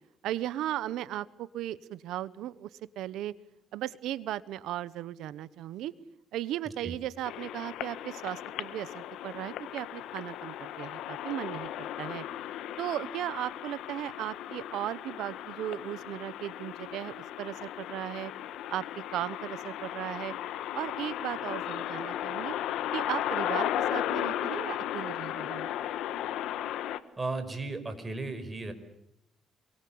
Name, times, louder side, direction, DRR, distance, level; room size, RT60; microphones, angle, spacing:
voice 1, 0.2-2.7 3.0-3.3 3.7-5.9 6.3-12.2 12.8-18.3 18.7-20.3 20.7-22.5 22.9-25.7, right 13 dB, 85° right, 17 dB, 1.0 m, -36 dB
sound 1, 7.2-27.0, left 12 dB, 85° left, 1.4 m, -36 dB
voice 2, 27.2-28.7, right 3 dB, 20° right, 9 dB, 5.2 m, -35 dB
28.0 x 23.0 x 8.7 m, 0.80 s
cardioid pair, 90°, 0 cm